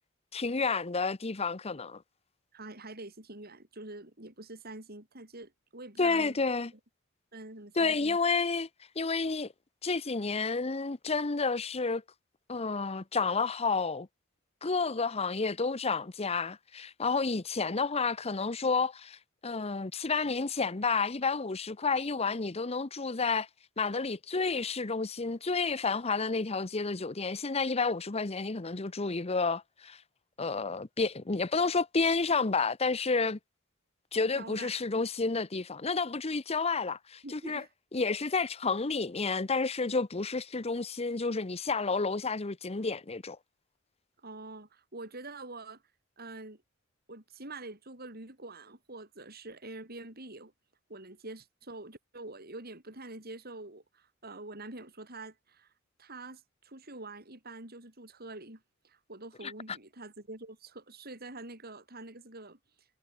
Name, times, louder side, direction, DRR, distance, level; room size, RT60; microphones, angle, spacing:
voice 1, 0.3-2.0 6.0-6.7 7.8-8.7 9.0-9.5 9.8-12.0 12.5-14.1 14.6-19.2 19.4-23.5 23.8-30.0 30.4-33.4 34.1-37.6 37.9-43.4 59.4-59.5, left 4 dB, 30° left, 0.9 m, -30 dB
voice 2, 2.5-6.4 7.3-8.2 34.3-34.7 37.2-37.7 39.8-39.9 44.2-45.8 46.2-46.6 47.1-50.5 50.9-55.7 56.0-62.6, right 2 dB, 50° right, 7.3 m, -46 dB
head